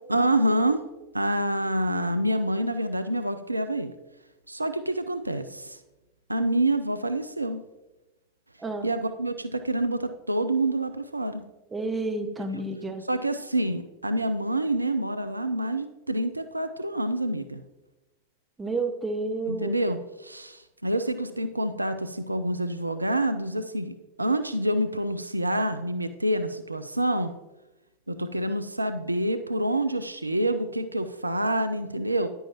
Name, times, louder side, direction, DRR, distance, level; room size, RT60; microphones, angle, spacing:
voice 1, 0.1-0.9 1.1-3.9 4.5-5.8 6.3-7.6 8.8-11.4 13.1-17.6 19.5-27.3 28.1-32.3, right 1 dB, 85° right, 10 dB, 0.4 m, -27 dB
voice 2, 11.7-13.0 18.6-19.7, right 2 dB, 15° right, 4 dB, 1.0 m, -30 dB
10.0 x 9.1 x 2.9 m, 1.0 s
figure-of-eight pair, 90°, 0 cm